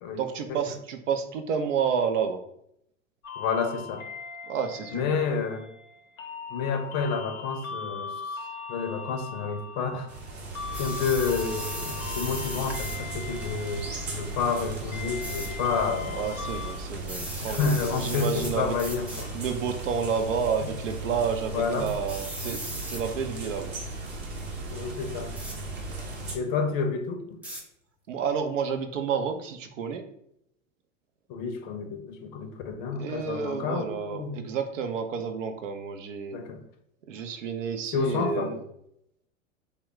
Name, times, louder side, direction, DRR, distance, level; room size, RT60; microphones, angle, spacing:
voice 1, 0.2-2.4 4.5-5.2 16.2-18.7 19.3-23.7 28.1-30.0 33.0-36.4 37.1-38.6, right 6 dB, 65° right, 6 dB, 0.6 m, -30 dB
sound 1, 3.2-16.7, left 5 dB, 80° left, 0.7 m, -40 dB
voice 2, 3.4-4.1 4.9-5.7 6.5-8.2 8.7-10.1 10.8-16.3 17.4-19.4 21.5-21.9 24.7-25.3 26.3-27.4 31.3-34.4 36.3-36.6 37.9-38.6, left 5 dB, 40° left, 6 dB, 0.6 m, -29 dB
sound 2, 10.1-26.4, right 2 dB, 25° right, 0.8 m, -37 dB
sound 3, 10.7-13.0 15.2-15.5 17.0-18.5 18.8-19.3 20.1-20.4 22.1-23.0 25.4-25.6 27.4-27.6, right 1 dB, 5° right, 0.4 m, -38 dB
3.3 x 2.2 x 3.7 m, 0.73 s
figure-of-eight pair, 90°, 40 cm